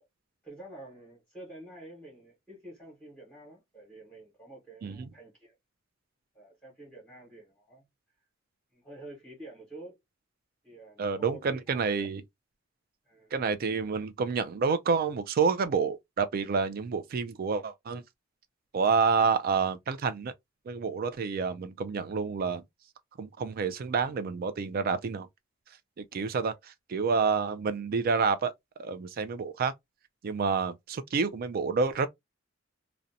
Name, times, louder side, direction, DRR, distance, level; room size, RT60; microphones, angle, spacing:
voice 1, 0.4-5.5 6.3-7.8 8.7-10.0 10.6-12.1 13.0-13.3 26.1-26.6, right 1 dB, 10° left, 1.0 m, -49 dB
voice 2, 11.0-12.2 13.3-18.0 18.7-20.3 20.7-22.6 23.2-25.3 26.0-28.5 28.8-29.7 30.2-32.1, right 5 dB, 50° right, 0.3 m, -28 dB
2.5 x 2.1 x 2.6 m
head